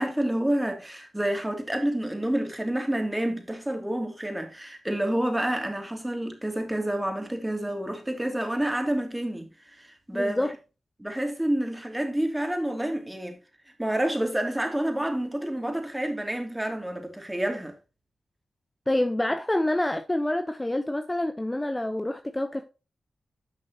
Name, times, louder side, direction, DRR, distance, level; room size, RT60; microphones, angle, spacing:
voice 1, 0.0-10.5 11.0-13.4 13.8-17.7, right 1 dB, 15° right, 3.0 m, -28 dB
voice 2, 10.1-10.5 18.9-22.7, left 1 dB, 20° left, 0.9 m, -27 dB
11.0 x 6.0 x 3.0 m
cardioid pair, 45°, 0 cm